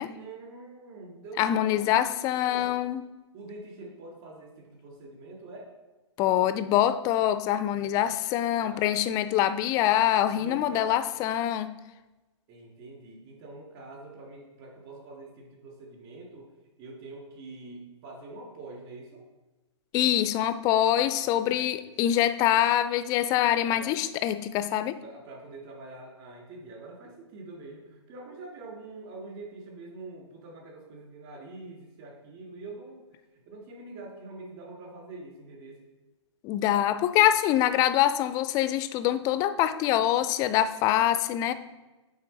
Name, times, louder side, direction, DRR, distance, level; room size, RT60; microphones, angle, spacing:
voice 1, 0.1-2.8 3.3-5.7 8.5-8.9 10.3-11.0 12.5-16.5 16.8-19.2 20.8-21.1 21.5-21.7 22.0-22.2 23.7-24.0 25.0-33.0 33.5-35.8, right 2 dB, 40° right, -1 dB, 2.2 m, -45 dB
voice 2, 1.4-3.0 6.2-11.7 19.9-25.0 36.4-41.5, left 12 dB, 20° left, 12 dB, 0.3 m, -25 dB
8.9 x 3.8 x 4.1 m, 1.1 s
figure-of-eight pair, 120°, 16 cm